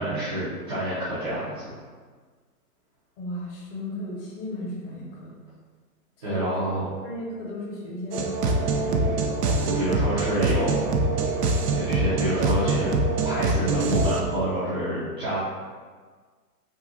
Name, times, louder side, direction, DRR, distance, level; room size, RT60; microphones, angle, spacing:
voice 1, 0.0-1.8 6.2-6.8 9.6-10.7 11.7-12.9 13.2-15.4, right 1 dB, 20° right, -13 dB, 0.4 m, -28 dB
voice 2, 3.2-5.4 6.2-6.8 7.0-8.3 8.8-9.2, left 1 dB, 35° left, -2 dB, 0.8 m, -35 dB
sound 1, 8.1-14.2, right 2 dB, 75° right, 0.6 m, -24 dB
3.7 x 2.3 x 2.7 m, 1.5 s
hypercardioid pair, 130°, 48 cm